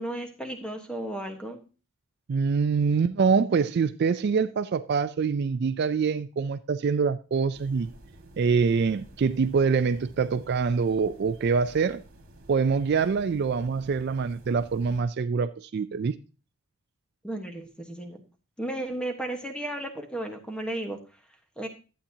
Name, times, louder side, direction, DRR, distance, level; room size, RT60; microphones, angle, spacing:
voice 1, 0.0-1.6 17.2-18.2 18.6-21.0 21.6-21.7, right 1 dB, 5° left, 1.1 m, -34 dB
voice 2, 2.3-7.9 8.4-12.0 12.5-16.1, right 5 dB, 50° right, 0.3 m, -25 dB
sound 1, 7.5-15.0, right 1 dB, 65° right, 1.8 m, -51 dB
11.5 x 8.4 x 2.8 m
head